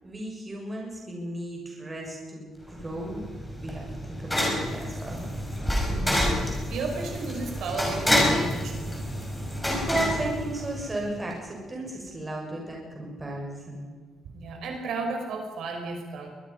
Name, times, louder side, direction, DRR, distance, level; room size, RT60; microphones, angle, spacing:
voice 1, 0.0-3.2 3.6-5.3 9.6-13.9, right 1 dB, 15° right, -1 dB, 6.3 m, -35 dB
sound 1, 2.7-11.1, left 1 dB, 5° left, 5.5 m, -28 dB
voice 2, 5.8-6.4 6.7-8.9 14.3-16.3, right 3 dB, 70° right, 2 dB, 5.7 m, -33 dB
23.5 x 20.5 x 5.5 m, 1.5 s
cardioid pair, 165°, 0 cm